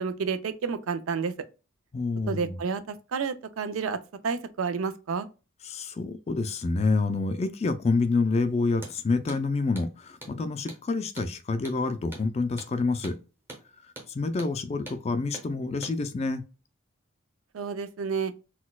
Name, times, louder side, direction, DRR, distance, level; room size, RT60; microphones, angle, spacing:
voice 1, 0.0-1.3 2.3-5.3 17.5-18.3, right 5 dB, 80° right, 0.4 m, -30 dB
voice 2, 1.9-2.6 5.7-13.2 14.1-16.4, left 3 dB, 30° left, 0.3 m, -27 dB
Hammer, 8.7-9.0 9.3-9.4 9.7-9.9 10.2-10.4 10.7-10.8 11.2-11.3 11.6-11.8 12.1-12.3 12.6-12.7 13.0-13.2 13.5-13.6 14.0-14.1 14.4-14.5 14.9-15.0 15.3-15.5 15.8-16.0, right 1 dB, 10° right, 0.7 m, -43 dB
4.0 x 2.2 x 2.3 m
head